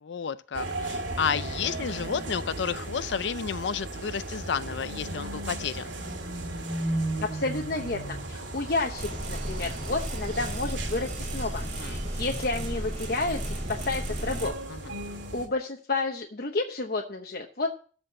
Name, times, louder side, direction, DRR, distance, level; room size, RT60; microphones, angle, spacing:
voice 1, 0.0-5.9 11.6-12.0 14.7-14.9, left 7 dB, 75° left, 0.4 m, -31 dB
sound 1, 0.5-15.5, right 2 dB, 85° right, 2.1 m, -36 dB
voice 2, 7.2-14.5 15.3-17.7, left 3 dB, 55° left, 0.9 m, -31 dB
sound 2, 9.0-14.5, right 1 dB, 40° right, 2.4 m, -34 dB
13.0 x 4.4 x 7.5 m
head